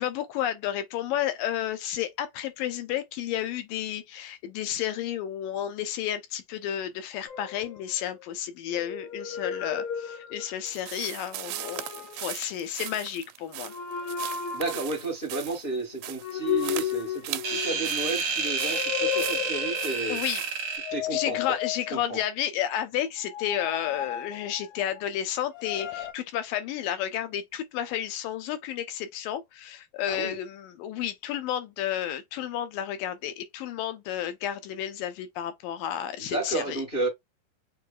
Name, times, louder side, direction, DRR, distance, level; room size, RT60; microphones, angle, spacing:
voice 1, 0.0-13.7 18.2-18.3 19.1-19.3 20.1-20.4 21.1-36.8, left 11 dB, 80° left, 2.5 m, -32 dB
sound 1, 7.3-8.2 8.7-10.7 11.3-12.3 13.6-15.0 16.2-17.9 18.4-20.1 20.7-22.3 23.2-25.0 25.5-26.1, left 10 dB, 60° left, 2.2 m, -34 dB
sound 2, 10.7-20.8, right 15 dB, 80° right, 2.1 m, -39 dB
voice 2, 14.5-20.2 20.9-21.6 21.9-22.2 30.1-30.3 36.2-37.1, right 3 dB, 30° left, 1.1 m, -32 dB
sound 3, 17.4-21.0, right 4 dB, 60° right, 1.1 m, -30 dB
6.5 x 2.8 x 2.3 m
omnidirectional pair, 4.0 m